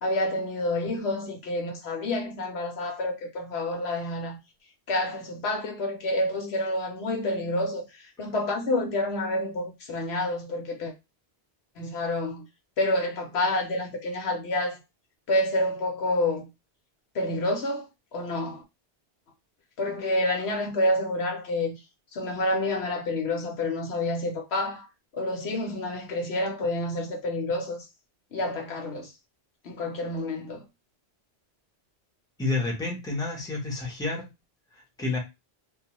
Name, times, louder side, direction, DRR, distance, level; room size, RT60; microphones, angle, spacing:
voice 1, 0.0-4.4 4.9-7.8 8.2-10.9 11.8-12.5 12.8-14.8 15.3-16.5 17.1-18.6 19.8-21.8 22.1-24.9 25.1-27.8 28.3-29.1 29.6-30.6, left 1 dB, 75° left, 1.0 m, -28 dB
voice 2, 32.4-34.3 34.7-35.2, left 3 dB, 5° left, 0.7 m, -30 dB
2.3 x 2.2 x 2.9 m
omnidirectional pair, 1.1 m